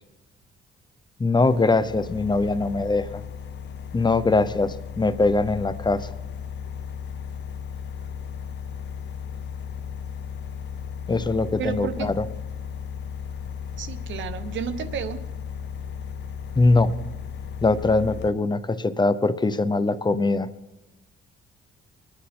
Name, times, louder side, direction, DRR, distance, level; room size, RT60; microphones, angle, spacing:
voice 1, 1.2-3.2 3.9-6.1 11.1-12.3 16.6-16.9 17.6-20.5, left 3 dB, 20° left, 13 dB, 0.7 m, -22 dB
sound 1, 1.4-18.3, left 7 dB, 65° left, 0.7 m, -35 dB
voice 2, 11.6-12.3 13.8-15.2, right 8 dB, 70° right, 12 dB, 1.0 m, -32 dB
23.0 x 9.8 x 4.3 m, 1.0 s
cardioid pair, 90°, 20 cm